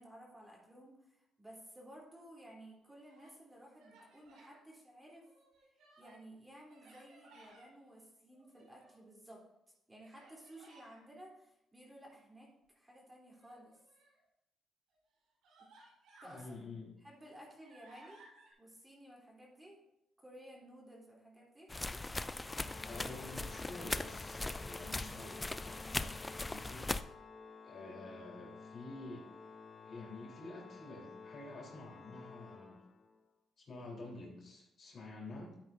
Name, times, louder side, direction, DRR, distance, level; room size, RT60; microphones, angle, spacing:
voice 1, 0.0-5.3 6.0-9.5 9.9-13.8 16.2-16.6 17.0-18.2 18.6-19.9 20.2-21.7, right 1 dB, 15° right, -3 dB, 3.5 m, -55 dB
Human voice, 2.8-3.4 3.8-4.6 5.1-6.3 6.7-7.7 8.3-9.1 10.0-11.0 13.3-14.2 14.9-15.0 15.4-16.5 17.0-18.5, right 2 dB, 85° right, 3.9 m, -62 dB
voice 2, 16.2-16.9 22.9-26.9 27.6-29.3 29.8-32.8 33.6-35.6, left 2 dB, 50° left, -3 dB, 3.8 m, -49 dB
sound 1, 21.7-27.0, left 2 dB, 15° left, 0.4 m, -40 dB
Organ, 22.4-33.3, left 5 dB, 35° left, 0.8 m, -53 dB
13.0 x 8.7 x 2.7 m, 0.84 s
cardioid pair, 90°, 0 cm